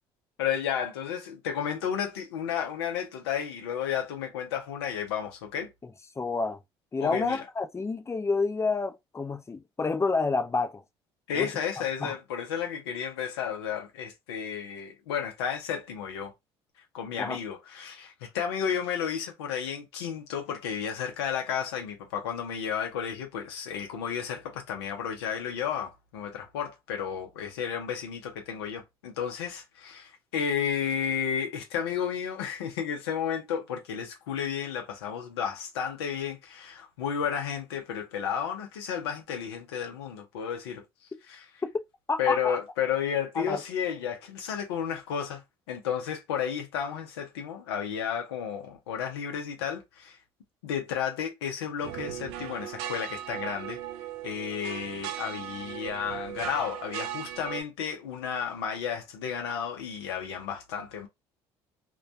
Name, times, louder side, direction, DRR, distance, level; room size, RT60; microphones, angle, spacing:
voice 1, 0.4-5.7 7.0-7.4 11.3-16.3 16.9-40.8 41.3-41.4 42.2-45.4 45.7-50.2 50.6-53.8 54.2-61.1, left 8 dB, 90° left, 0.5 m, -32 dB
voice 2, 6.2-6.6 6.9-10.8 11.3-11.5 12.0-12.1 17.2-17.4 42.1-42.6 43.4-43.6, left 4 dB, 20° left, 0.5 m, -29 dB
sound 1, 51.8-57.6, right 11 dB, 80° right, 0.4 m, -37 dB
2.2 x 2.1 x 2.6 m
hypercardioid pair, 65°, 13 cm